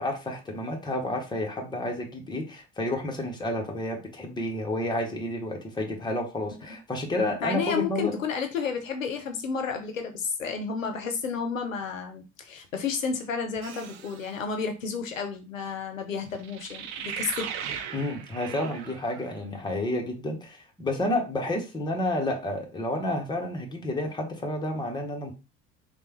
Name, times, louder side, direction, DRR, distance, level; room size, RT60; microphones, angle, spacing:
voice 1, 0.0-8.2 17.9-25.3, left 1 dB, 10° left, 1 dB, 0.9 m, -30 dB
voice 2, 7.4-17.5, left 5 dB, 80° left, 5 dB, 0.5 m, -31 dB
sound 1, 13.6-14.3 16.4-19.3, right 8 dB, 50° right, 0.5 m, -38 dB
3.2 x 2.2 x 2.9 m, 0.29 s
figure-of-eight pair, 55°, 39 cm